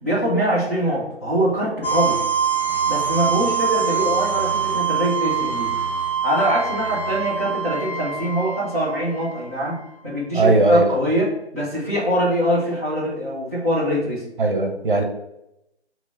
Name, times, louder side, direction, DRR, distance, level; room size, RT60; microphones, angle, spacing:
voice 1, 0.0-2.2 2.9-5.7 6.2-14.2, equal, 15° left, -8 dB, 0.7 m, -23 dB
sound 1, 1.8-9.6, right 7 dB, 50° left, 1.7 m, -24 dB
voice 2, 10.3-10.9 14.4-15.0, right 2 dB, 50° right, 4 dB, 0.8 m, -18 dB
5.0 x 3.0 x 3.4 m, 0.84 s
figure-of-eight pair, 150°, 34 cm